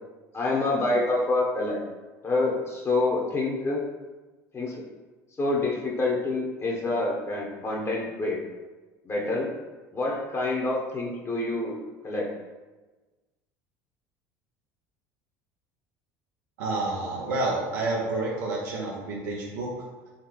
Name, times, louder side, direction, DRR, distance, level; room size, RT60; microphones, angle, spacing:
voice 1, 0.3-1.8 2.2-3.8 4.5-4.8 5.4-8.4 9.0-9.5 9.9-11.7 12.0-12.3, left 2 dB, 30° left, -2 dB, 0.9 m, -27 dB
voice 2, 16.6-19.7, right 2 dB, 85° right, -3 dB, 0.7 m, -29 dB
4.0 x 3.2 x 3.0 m, 1.2 s
hypercardioid pair, 85°, 9 cm